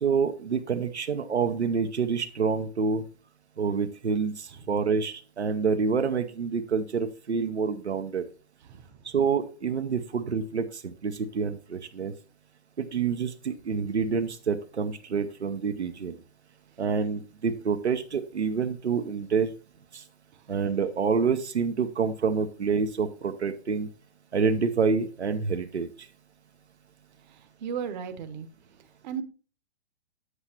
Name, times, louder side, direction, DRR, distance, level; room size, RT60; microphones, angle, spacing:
voice 1, 0.0-3.0 3.6-8.2 9.0-12.1 12.8-16.2 16.8-19.5 19.9-20.0 20.5-23.9 24.3-25.9, right 5 dB, 80° right, 6 dB, 0.8 m, -27 dB
voice 2, 27.3-28.5 29.0-29.2, right 7 dB, 45° right, 9 dB, 0.9 m, -35 dB
8.7 x 8.0 x 2.8 m, 0.35 s
figure-of-eight pair, 115°, 33 cm